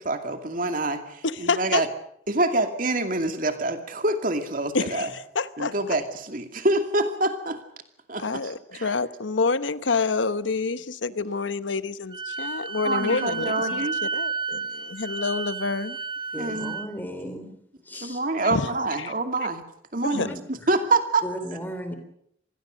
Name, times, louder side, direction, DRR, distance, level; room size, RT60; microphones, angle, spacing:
voice 1, 0.0-1.9 2.3-5.1 5.6-7.6 8.1-8.9 12.8-14.0 16.3-16.8 18.0-19.6 19.9-21.2, right 2 dB, 45° right, 2.5 m, -26 dB
voice 2, 1.2-1.8 4.7-6.0 8.2-16.0 17.9-18.1 18.5-18.7 19.0-19.1 20.0-20.3, left 4 dB, 90° left, 1.0 m, -28 dB
Wind instrument woodwind instrument, 12.1-16.9, right 4 dB, 30° right, 1.4 m, -32 dB
voice 3, 16.3-17.5 17.8-18.2 20.1-20.4 21.2-22.0, equal, 10° left, 3.3 m, -35 dB
26.5 x 20.0 x 6.5 m
head